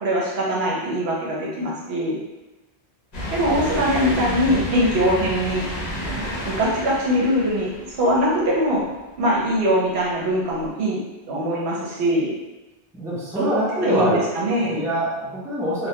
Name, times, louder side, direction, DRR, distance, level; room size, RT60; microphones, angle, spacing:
voice 1, 0.0-2.2 3.3-5.7 6.5-7.7 8.0-8.8 9.2-11.0 11.3-12.3 13.3-13.5 13.8-14.8, equal, 75° right, -5 dB, 1.0 m, -22 dB
sound 1, 3.1-8.7 9.2-9.3 10.6-10.7, left 1 dB, 45° left, 0.6 m, -31 dB
voice 2, 4.1-4.8 12.9-15.9, right 1 dB, 5° right, -8 dB, 0.4 m, -25 dB
2.2 x 2.2 x 2.8 m, 1.0 s
omnidirectional pair, 1.1 m